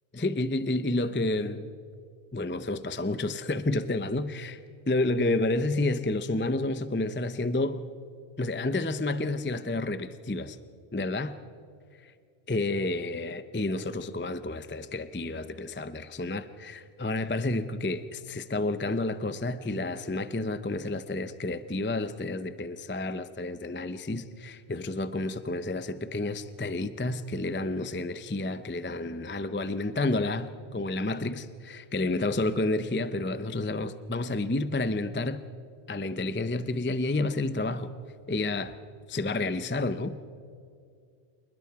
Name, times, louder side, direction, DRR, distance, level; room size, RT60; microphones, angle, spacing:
voice 1, 0.1-1.7 2.3-4.6 4.9-7.8 8.4-10.6 10.9-11.3 12.0-12.1 12.5-35.4 35.9-37.9 38.3-38.7 39.1-40.2, left 2 dB, 15° left, 12 dB, 0.5 m, -30 dB
27.5 x 20.5 x 4.7 m, 2.3 s
omnidirectional pair, 1.1 m